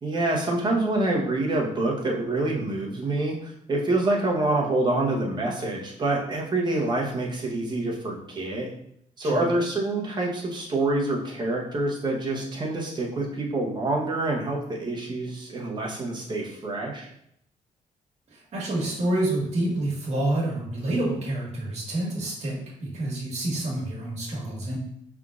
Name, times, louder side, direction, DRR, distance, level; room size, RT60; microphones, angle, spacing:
voice 1, 0.0-8.7 9.2-17.1, right 2 dB, 30° right, -2 dB, 1.0 m, -26 dB
voice 2, 9.2-9.5 18.3-24.8, right 1 dB, 50° right, -4 dB, 1.5 m, -28 dB
5.0 x 3.6 x 2.4 m, 0.72 s
wide cardioid pair, 160°, 14 cm